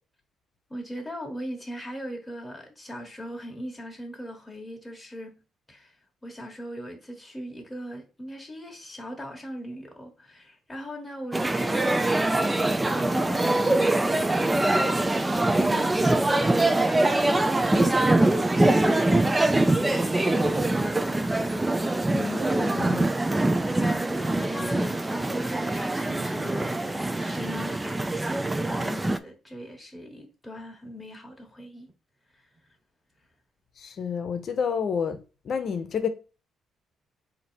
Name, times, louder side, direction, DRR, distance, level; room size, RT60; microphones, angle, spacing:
voice 1, 0.7-5.4 5.7-6.0 6.2-12.0 12.4-21.3 23.8-31.9 32.3-32.4, equal, 5° left, 1.2 m, -39 dB
sound 1, 11.3-29.2, right 2 dB, 15° right, 0.4 m, -24 dB
voice 2, 22.1-23.1 33.8-36.1, left 6 dB, 55° left, 0.7 m, -30 dB
4.0 x 2.7 x 4.4 m
cardioid pair, 90°, 0 cm